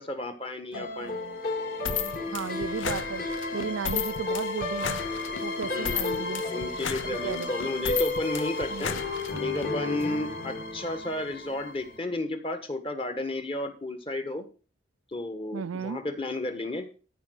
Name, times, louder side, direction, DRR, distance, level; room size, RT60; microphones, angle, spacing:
voice 1, 0.0-1.1 5.6-9.0 9.4-14.5 15.1-16.9, left 2 dB, 25° left, 1.4 m, -33 dB
sound 1, 0.7-12.0, left 2 dB, 45° left, 2.4 m, -33 dB
voice 2, 0.7-1.4 2.3-3.2 3.5-5.0 5.4-6.4 7.0-7.5 8.7-9.0 15.5-16.0, right 6 dB, 85° right, 0.5 m, -35 dB
sound 2, 1.8-9.7, left 7 dB, 70° left, 0.8 m, -34 dB
13.5 x 4.9 x 6.4 m
head